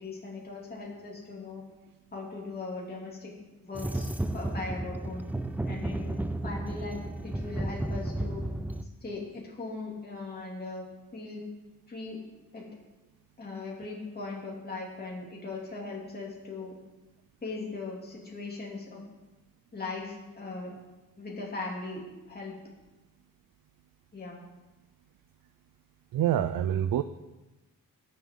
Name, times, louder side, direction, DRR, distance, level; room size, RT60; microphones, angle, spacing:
voice 1, 0.0-1.6 2.1-3.3 3.6-5.3 5.6-8.4 9.0-10.9 11.1-11.4 11.9-12.2 12.5-12.7 13.4-16.7 17.4-19.0 19.7-20.7 21.2-22.5 24.1-24.4, left 3 dB, 25° left, -3 dB, 2.6 m, -39 dB
sound 1, 3.7-8.8, right 1 dB, 5° right, 0.3 m, -33 dB
voice 2, 26.1-27.0, right 11 dB, 70° right, 12 dB, 0.5 m, -26 dB
19.5 x 7.4 x 3.7 m, 1.1 s
wide cardioid pair, 135°, 35 cm